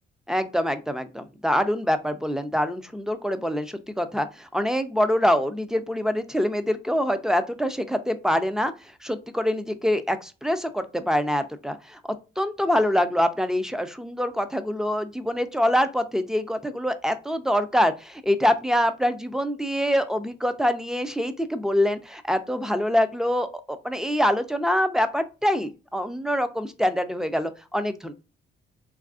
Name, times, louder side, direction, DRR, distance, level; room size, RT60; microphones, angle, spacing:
voice 1, 0.3-8.7 9.0-12.0 12.4-28.1, equal, 5° right, 10 dB, 0.3 m, -25 dB
3.3 x 2.4 x 2.3 m, 0.31 s
cardioid pair, 90°, 20 cm